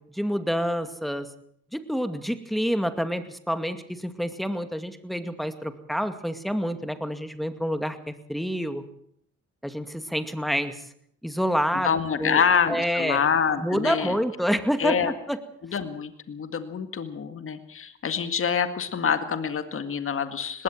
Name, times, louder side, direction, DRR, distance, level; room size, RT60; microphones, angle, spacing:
voice 1, 0.1-1.3 1.7-8.8 9.6-10.8 11.2-11.9 12.2-12.4 12.7-13.2 13.6-15.4, equal, ahead, 9 dB, 2.3 m, -28 dB
voice 2, 11.7-14.2 14.8-15.1 15.7-20.6, left 6 dB, 45° left, 10 dB, 1.9 m, -26 dB
20.0 x 17.5 x 7.6 m, 0.68 s
cardioid pair, 90°, 30 cm